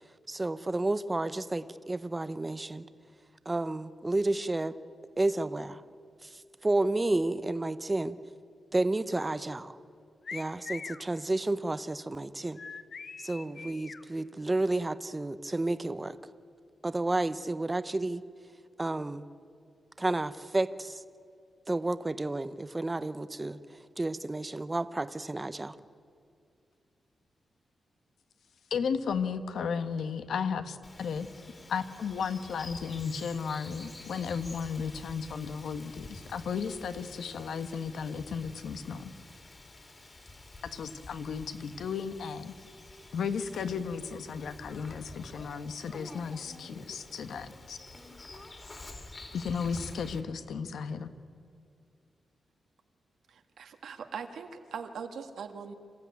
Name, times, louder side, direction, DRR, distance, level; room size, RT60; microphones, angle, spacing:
voice 1, 0.3-2.8 3.5-4.7 5.2-5.8 6.2-6.3 6.6-8.1 8.7-9.8 10.3-12.6 13.2-16.2 16.8-18.2 18.8-19.2 20.0-21.0 21.7-23.6 24.0-25.8, right 2 dB, 15° right, 13 dB, 0.7 m, -31 dB
sound 1, 10.2-11.0 12.6-14.0, left 5 dB, 45° left, 1.0 m, -42 dB
voice 2, 28.7-31.3 31.7-39.1 40.6-42.5 43.1-47.8 49.3-51.1, left 6 dB, 75° left, 10 dB, 1.3 m, -34 dB
Bird vocalization bird call bird song, 30.8-50.2, left 2 dB, 25° left, 2.8 m, -49 dB
voice 3, 53.3-55.7, right 6 dB, 80° right, 6 dB, 1.7 m, -41 dB
27.0 x 15.0 x 9.4 m, 2.4 s
wide cardioid pair, 160°, 0 cm